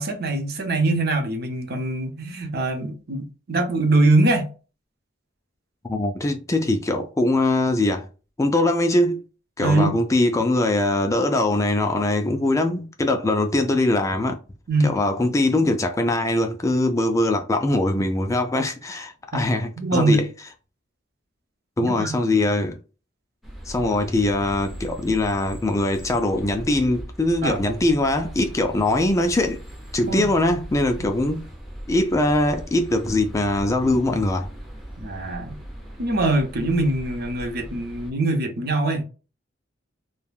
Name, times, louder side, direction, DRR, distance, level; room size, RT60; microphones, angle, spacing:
voice 1, 0.0-4.5 9.6-9.9 14.7-15.0 19.3-19.4 19.8-20.2 21.8-22.1 27.4-27.6 30.1-30.3 35.0-35.6 36.0-39.0, right 2 dB, 55° right, 0.7 m, -23 dB
voice 2, 5.8-8.1 8.4-9.2 9.6-14.4 14.8-20.3 21.8-22.8 23.7-29.6 29.9-31.4 31.9-34.5, left 2 dB, 15° left, 0.3 m, -22 dB
sound 1, 23.4-38.1, equal, ahead, 0.7 m, -39 dB
3.2 x 2.2 x 2.3 m
head